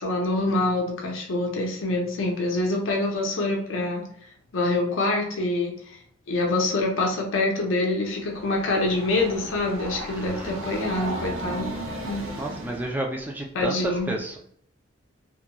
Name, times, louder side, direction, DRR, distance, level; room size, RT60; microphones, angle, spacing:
voice 1, 0.0-4.0 4.5-6.0 6.3-11.7 12.0-12.3 13.5-14.2, left 2 dB, 75° left, 0 dB, 0.6 m, -25 dB
Train, 8.1-13.0, right 1 dB, 80° right, 0.5 m, -35 dB
voice 2, 10.1-10.6 12.4-14.4, right 1 dB, 10° right, 1 dB, 0.3 m, -31 dB
2.9 x 2.5 x 2.2 m, 0.65 s
head